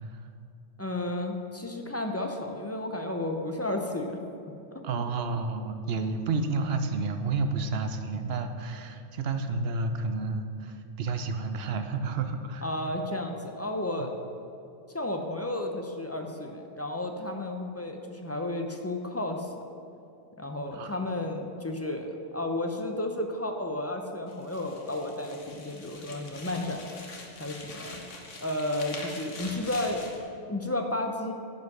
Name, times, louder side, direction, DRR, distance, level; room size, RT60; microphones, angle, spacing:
voice 1, 0.8-4.2 4.7-5.0 12.6-14.1 14.9-19.5 20.4-26.9 27.4-28.0 28.4-30.1 30.5-31.3, left 1 dB, 20° left, 3 dB, 0.5 m, -32 dB
voice 2, 4.8-12.6 14.0-14.1 20.7-20.9 27.8-27.9, right 3 dB, 60° right, 7 dB, 0.9 m, -31 dB
sound 1, 24.3-30.2, left 2 dB, 90° left, 1.6 m, -44 dB
9.4 x 5.6 x 6.6 m, 2.7 s
omnidirectional pair, 1.2 m